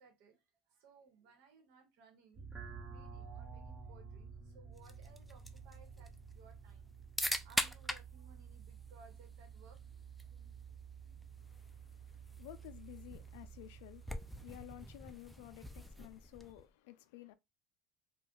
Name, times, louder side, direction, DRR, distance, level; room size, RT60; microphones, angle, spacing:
voice 1, 0.0-2.5 2.9-6.9 7.2-9.8, right 4 dB, 70° right, 1.1 m, -62 dB
sound 1, 2.3-14.8, right 6 dB, 35° right, 1.2 m, -52 dB
sound 2, 4.8-16.7, equal, ahead, 0.4 m, -44 dB
voice 2, 11.4-17.3, left 16 dB, 80° left, 0.3 m, -54 dB
2.4 x 2.2 x 3.6 m
supercardioid pair, 95°, 0 cm